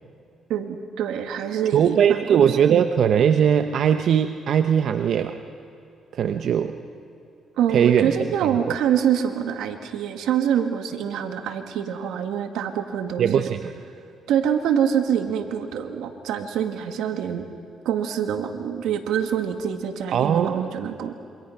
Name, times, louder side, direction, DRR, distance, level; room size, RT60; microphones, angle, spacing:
voice 1, 0.5-2.7 7.6-13.5 14.3-17.5 17.9-21.1, right 8 dB, 85° right, 6 dB, 1.9 m, -25 dB
voice 2, 1.7-5.4 6.1-6.7 7.7-8.2 8.7-8.8 13.2-13.7 20.1-20.6, right 8 dB, 65° right, 8 dB, 0.8 m, -20 dB
27.0 x 25.5 x 5.8 m, 2.5 s
cardioid pair, 90°, 0 cm